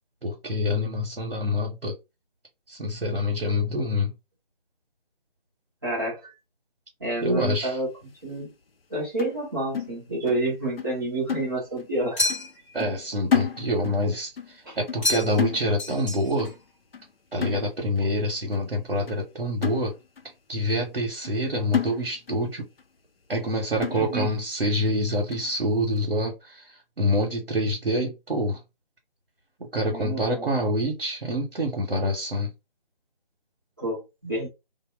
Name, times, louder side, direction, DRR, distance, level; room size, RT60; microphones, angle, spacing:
voice 1, 0.2-1.9 2.7-4.1 7.2-7.8 12.7-16.5 17.3-20.0 20.5-22.7 23.3-28.6 29.7-32.5, left 1 dB, 90° right, 0.9 m, -26 dB
voice 2, 5.8-6.3 7.0-7.9 8.2-8.5 8.9-12.2 14.7-14.8 23.9-24.3 29.9-30.5 33.8-34.5, right 2 dB, 20° right, 0.7 m, -29 dB
sound 1, 9.2-10.5 10.8-11.0 11.3-12.0 12.3-12.5 12.8-14.1 14.4-14.6 14.9-16.1 16.4-16.6 16.9-17.1 17.4-18.0 18.5-18.6 19.1-19.2 19.6-20.3 20.7-20.8 21.2-21.4 21.7-22.5 22.8-22.9 23.3-23.4 23.8-24.4 24.9-25.0 25.3-25.5, left 7 dB, 80° left, 0.6 m, -31 dB
sound 2, 12.2-12.8 15.0-15.5 15.8-16.5, left 1 dB, 10° left, 0.9 m, -29 dB
2.0 x 2.0 x 3.2 m
figure-of-eight pair, 155°, 29 cm